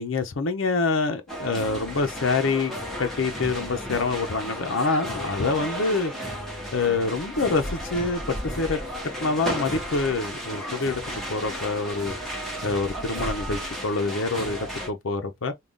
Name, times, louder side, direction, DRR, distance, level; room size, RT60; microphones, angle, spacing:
voice 1, 0.0-2.7 3.0-6.1 6.7-8.8 9.2-11.0 11.3-12.1 12.6-15.5, left 3 dB, 80° left, 0.7 m, -26 dB
sound 1, 1.3-14.9, equal, ahead, 1.2 m, -33 dB
3.7 x 2.3 x 3.6 m
head